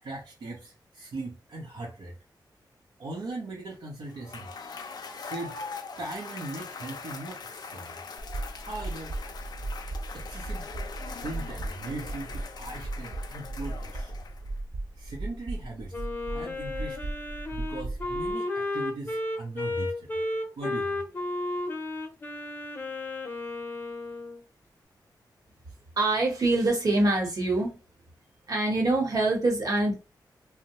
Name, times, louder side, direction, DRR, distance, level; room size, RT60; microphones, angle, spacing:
voice 1, 0.0-2.1 3.0-8.0 8.6-9.1 10.1-10.7 11.0-14.2 15.0-17.1 17.5-20.2 20.6-21.0, right 2 dB, 75° right, -1 dB, 0.6 m, -39 dB
Cheering / Applause / Crowd, 4.1-14.6, left 5 dB, 65° left, 0.4 m, -42 dB
sound 1, 8.2-18.3, right 2 dB, 30° right, 0.4 m, -37 dB
Wind instrument woodwind instrument, 15.9-24.4, left 2 dB, 25° left, 0.7 m, -33 dB
voice 2, 26.0-27.8 28.5-29.9, right 2 dB, 55° right, 1 dB, 1.0 m, -24 dB
2.6 x 2.1 x 2.9 m, 0.29 s
wide cardioid pair, 135°, 8 cm